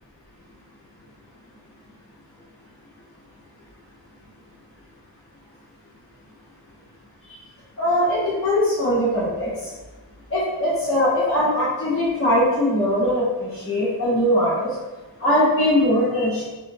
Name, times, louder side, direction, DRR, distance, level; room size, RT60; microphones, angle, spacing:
voice 1, 7.8-9.7 10.3-14.7 15.2-16.4, left 1 dB, 30° left, -13 dB, 1.3 m, -21 dB
3.2 x 2.8 x 2.7 m, 1.2 s
wide cardioid pair, 90°, 44 cm